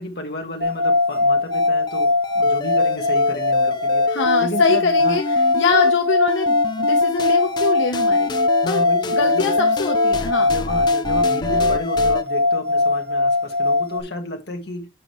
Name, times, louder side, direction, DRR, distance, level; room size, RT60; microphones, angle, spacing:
voice 1, 0.0-2.1 2.3-5.2 8.6-9.5 10.4-14.9, left 1 dB, 55° left, 1.6 m, -32 dB
sound 1, 0.6-14.0, left 2 dB, 55° right, 1.2 m, -20 dB
sound 2, 1.5-5.9 6.3-12.2, left 2 dB, 20° left, 0.4 m, -30 dB
voice 2, 4.1-5.2 5.5-8.8 9.1-10.5, left 4 dB, 80° left, 1.1 m, -24 dB
7.6 x 6.0 x 3.2 m
head